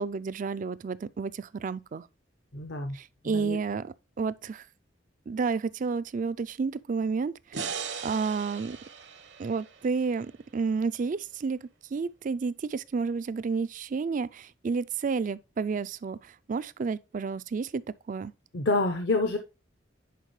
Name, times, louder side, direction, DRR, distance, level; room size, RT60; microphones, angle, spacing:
voice 1, 0.0-2.1 2.9-4.6 5.3-7.6 8.0-8.8 9.4-17.8 18.1-18.3, right 5 dB, 45° right, 0.4 m, -31 dB
voice 2, 2.5-3.0 3.2-3.6 18.5-19.4, left 2 dB, 65° left, 0.8 m, -27 dB
sound 1, 7.5-10.8, right 6 dB, 70° right, 1.0 m, -39 dB
10.0 x 4.6 x 3.1 m
head